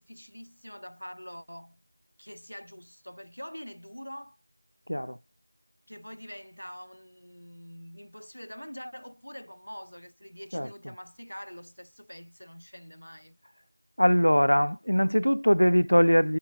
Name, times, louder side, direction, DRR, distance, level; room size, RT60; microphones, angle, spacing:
voice 1, 0.0-1.8 2.2-4.4 5.9-13.4, equal, 40° left, 5.3 m, -44 dB
voice 2, 14.0-16.4, equal, 85° left, 0.6 m, -22 dB
figure-of-eight pair, 180°, 0 cm